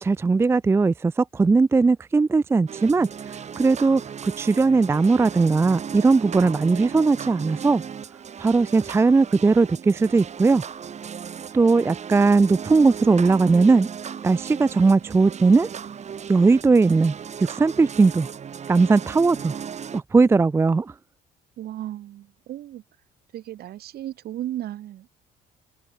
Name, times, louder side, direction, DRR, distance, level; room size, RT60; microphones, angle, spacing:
voice 1, 0.0-7.8 8.4-10.6 11.5-13.9 14.2-15.7 16.3-17.1 17.5-18.3 18.7-19.5 19.9-20.9, right 4 dB, 15° right, 0.4 m, -19 dB
sound 1, 2.7-20.0, right 7 dB, 40° right, 6.9 m, -36 dB
voice 2, 21.6-22.8 23.3-25.1, right 13 dB, 65° right, 7.0 m, -35 dB
cardioid pair, 110°, 17 cm